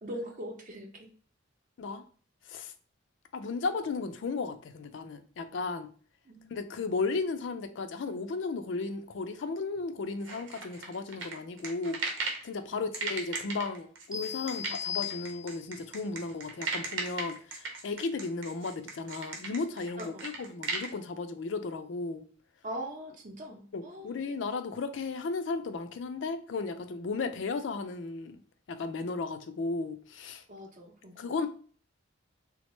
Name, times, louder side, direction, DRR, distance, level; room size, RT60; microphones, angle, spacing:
voice 1, 0.0-1.1 6.3-6.7 12.7-12.8 20.0-20.3 22.6-24.1 27.2-27.3 30.5-31.3, equal, 40° right, 3 dB, 0.6 m, -42 dB
voice 2, 3.3-5.9 6.5-12.0 12.4-22.3 23.7-28.4 28.7-30.4 31.2-31.5, left 4 dB, 65° left, 8 dB, 0.4 m, -35 dB
sound 1, 10.2-12.5 12.9-20.9, right 3 dB, 80° right, 0.9 m, -36 dB
sound 2, 14.1-15.8, left 8 dB, 5° right, 0.3 m, -37 dB
3.5 x 2.1 x 3.0 m, 0.43 s
head